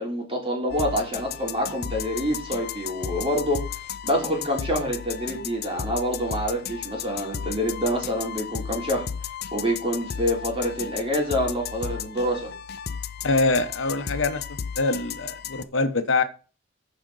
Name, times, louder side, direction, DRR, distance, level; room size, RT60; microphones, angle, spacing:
voice 1, 0.0-9.0 9.5-12.5, equal, 30° right, 3.2 m, -27 dB
sound 1, 0.7-15.6, left 7 dB, 55° left, 0.5 m, -34 dB
voice 2, 13.2-14.4 14.8-16.2, left 3 dB, 75° left, 0.9 m, -24 dB
14.5 x 5.0 x 4.0 m
head